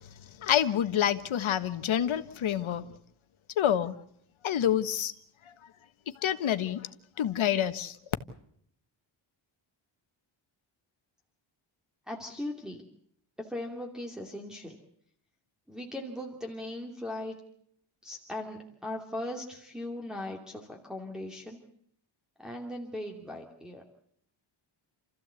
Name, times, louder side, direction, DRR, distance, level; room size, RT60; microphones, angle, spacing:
voice 1, 0.4-2.8 3.6-3.9 4.4-5.1 6.2-6.9 7.2-7.9, left 10 dB, 75° left, 1.5 m, -27 dB
voice 2, 12.1-12.8 13.4-14.8 15.7-17.4 18.0-21.6 22.4-23.8, left 1 dB, ahead, 2.7 m, -38 dB
29.0 x 15.0 x 8.2 m
wide cardioid pair, 160°, 48 cm